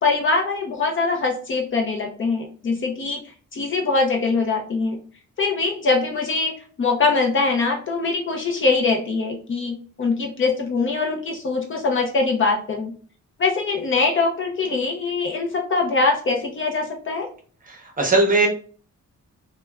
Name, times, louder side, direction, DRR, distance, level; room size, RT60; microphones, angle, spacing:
voice 1, 0.0-3.2 3.5-5.0 5.4-12.9 13.4-17.3, left 3 dB, 40° left, 1 dB, 0.6 m, -23 dB
voice 2, 17.7-18.5, right 2 dB, 25° right, 1 dB, 0.8 m, -19 dB
3.2 x 2.2 x 2.3 m, 0.42 s
wide cardioid pair, 155°, 30 cm